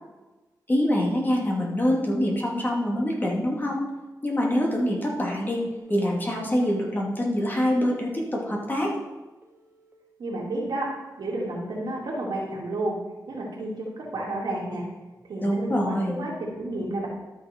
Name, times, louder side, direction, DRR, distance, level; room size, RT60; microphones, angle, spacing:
voice 1, 0.7-3.8 4.2-5.6 5.9-8.9 15.4-16.2, equal, 25° left, -2 dB, 2.6 m, -25 dB
Telephone, 5.8-5.9 6.4-6.9 7.4-7.9 8.4-8.9 9.4-9.9 10.4-10.7 11.7-11.9, right 2 dB, 30° right, 1.7 m, -55 dB
voice 2, 10.2-10.9 11.2-13.0 13.3-13.9 14.1-14.8 15.2-17.1, right 1 dB, 85° right, -3 dB, 2.7 m, -31 dB
12.5 x 6.4 x 4.5 m, 1.2 s
wide cardioid pair, 85°, 7 cm